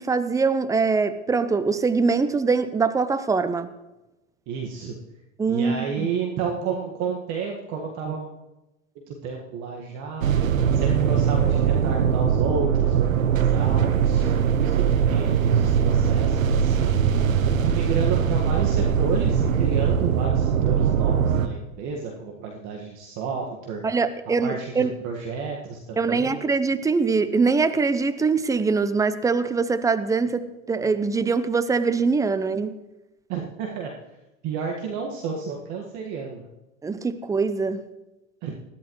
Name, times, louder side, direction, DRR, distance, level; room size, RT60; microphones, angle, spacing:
voice 1, 0.0-3.7 5.4-6.1 23.8-24.9 26.0-32.8 36.8-37.8, right 4 dB, 10° right, 0.7 m, -23 dB
voice 2, 4.5-4.9 5.5-8.3 9.1-10.3 10.7-14.4 14.8-23.9 24.4-26.5 33.3-33.9 34.4-36.5 38.4-38.6, right 5 dB, 45° right, 1.8 m, -31 dB
sound 1, 10.2-21.5, right 7 dB, 75° right, 1.1 m, -21 dB
20.0 x 14.0 x 3.2 m
hypercardioid pair, 95°, 40 cm